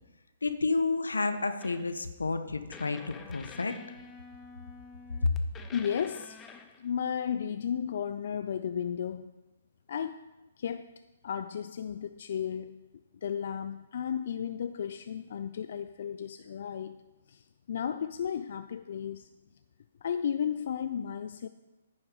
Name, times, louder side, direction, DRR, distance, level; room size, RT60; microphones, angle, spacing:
voice 1, 0.4-3.7 5.2-5.3, left 3 dB, 85° left, 10 dB, 0.9 m, -30 dB
sound 1, 1.6-2.0 2.7-6.9, left 5 dB, 15° left, 0.8 m, -48 dB
voice 2, 5.7-6.4 6.8-9.3 9.9-10.2 10.6-10.9 11.2-12.8 13.2-17.0 17.3-19.3 20.0-21.5, left 8 dB, 60° left, 10 dB, 0.4 m, -34 dB
9.8 x 7.1 x 5.3 m, 1.1 s
figure-of-eight pair, 130°, 0 cm